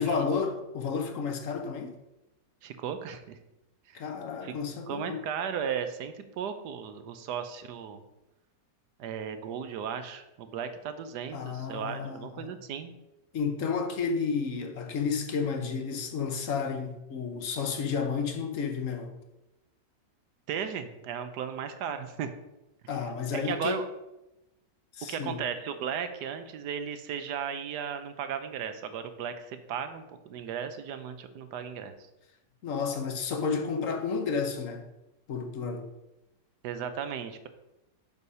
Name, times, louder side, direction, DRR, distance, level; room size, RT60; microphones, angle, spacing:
voice 1, 0.0-1.9 3.9-5.2 11.3-12.5 13.3-19.1 22.9-23.8 24.9-25.4 32.6-34.8 35.3-35.9, left 5 dB, 55° left, 5 dB, 1.1 m, -31 dB
voice 2, 2.6-3.4 3.9-4.0 4.4-4.5 4.9-8.0 9.0-13.0 20.5-22.3 23.3-23.8 25.1-31.9 36.6-37.5, right 7 dB, 70° right, 9 dB, 1.2 m, -35 dB
6.4 x 5.4 x 5.4 m, 0.94 s
omnidirectional pair, 1.9 m